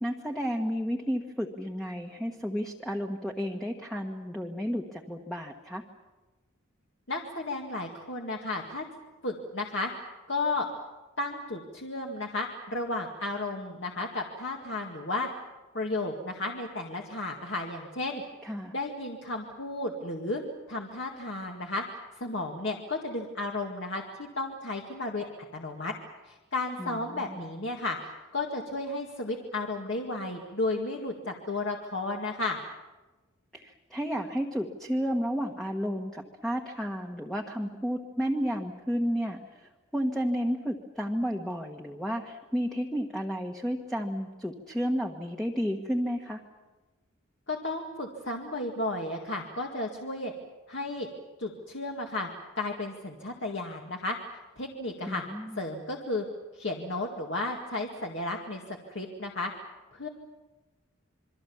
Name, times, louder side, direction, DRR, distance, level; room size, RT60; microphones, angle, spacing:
voice 1, 0.0-5.8 18.4-18.7 26.8-27.4 33.5-46.4 55.0-55.6, equal, ahead, 1 dB, 1.3 m, -32 dB
voice 2, 7.1-8.8 9.2-9.9 10.3-10.7 11.2-15.3 15.7-18.2 18.7-20.4 20.7-21.8 22.1-24.0 24.4-25.3 25.5-25.9 26.2-32.6 47.5-50.3 50.7-51.1 51.4-52.3 52.6-54.2 54.6-55.2 55.6-56.2 56.5-59.5 59.9-60.1, left 2 dB, 55° left, 1 dB, 2.1 m, -33 dB
27.5 x 23.0 x 7.2 m, 1.2 s
head